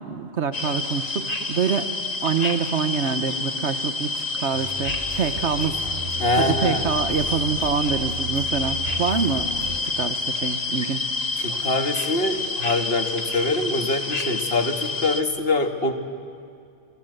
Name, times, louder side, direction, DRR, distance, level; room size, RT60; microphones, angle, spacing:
voice 1, 0.0-1.9 2.2-5.8 6.4-11.1, right 6 dB, 75° right, 10 dB, 1.4 m, -26 dB
sound 1, 0.5-15.2, left 3 dB, 35° left, 1.4 m, -28 dB
sound 2, 4.5-9.8, right 3 dB, 60° right, 4.4 m, -35 dB
voice 2, 6.2-6.9 11.4-15.9, left 2 dB, 55° left, 5 dB, 1.9 m, -24 dB
27.5 x 22.0 x 8.0 m, 2.3 s
omnidirectional pair, 1.2 m